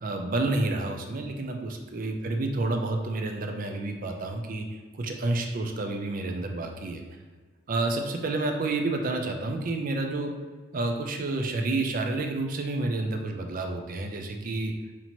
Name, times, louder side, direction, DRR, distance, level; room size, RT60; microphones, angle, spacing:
voice 1, 0.0-4.7 4.9-7.0 7.7-10.3 10.7-14.7, right 2 dB, 45° right, 4 dB, 0.4 m, -29 dB
4.3 x 2.8 x 2.8 m, 1.4 s
head